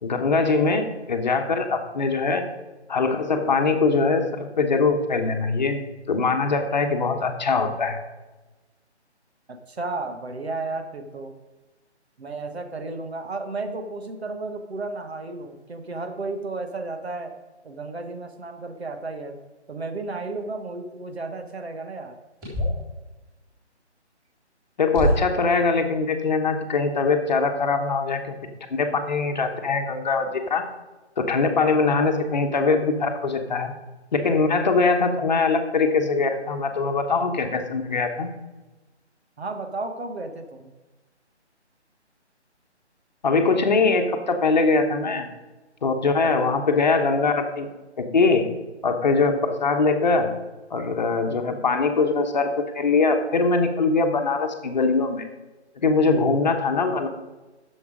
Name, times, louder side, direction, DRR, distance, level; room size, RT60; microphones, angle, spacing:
voice 1, 0.0-2.5 2.9-5.8 6.1-8.0 24.8-28.4 28.7-30.6 31.2-33.7 34.1-38.3 43.2-45.3 45.8-47.7 48.0-48.5 48.8-50.3 50.7-55.2 55.8-57.1, left 4 dB, 40° left, 5 dB, 1.1 m, -22 dB
voice 2, 9.5-11.3 12.2-17.3 17.6-19.4 19.7-22.2 39.4-40.7, right 3 dB, 65° right, 7 dB, 1.5 m, -33 dB
sound 1, 22.4-22.9 24.2-24.3 24.9-25.5, equal, 10° right, 3.8 m, -24 dB
10.5 x 7.1 x 5.0 m, 1.2 s
figure-of-eight pair, 155°, 35 cm